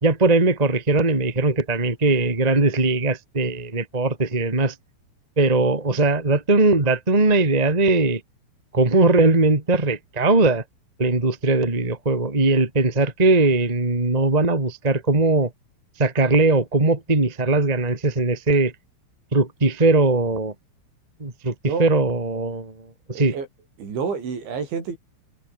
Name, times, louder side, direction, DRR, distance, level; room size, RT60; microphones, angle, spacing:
voice 1, 0.0-4.7 5.3-8.2 8.7-10.6 11.0-15.5 16.0-18.7 19.3-20.5 21.2-23.3, right 3 dB, 15° right, 1.4 m, -20 dB
voice 2, 23.1-23.5 23.8-25.0, right 5 dB, 65° right, 8.2 m, -28 dB
omnidirectional pair, 5.8 m